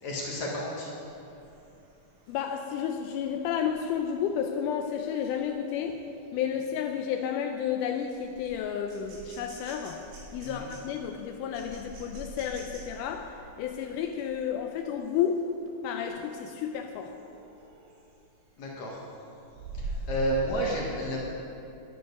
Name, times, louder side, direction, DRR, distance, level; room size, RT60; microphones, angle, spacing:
voice 1, 0.0-0.9 10.4-10.7 18.6-19.0 19.8-21.2, right 1 dB, 60° left, -3 dB, 2.3 m, -31 dB
sound 1, 1.0-15.5 16.0-16.3 16.6-18.3 18.6-20.6, right 1 dB, 80° right, 3.9 m, -45 dB
voice 2, 2.3-6.0 6.3-10.0 10.3-15.4 15.8-17.1, left 8 dB, 85° left, 4 dB, 1.8 m, -31 dB
10.5 x 9.9 x 5.3 m, 2.7 s
omnidirectional pair, 4.2 m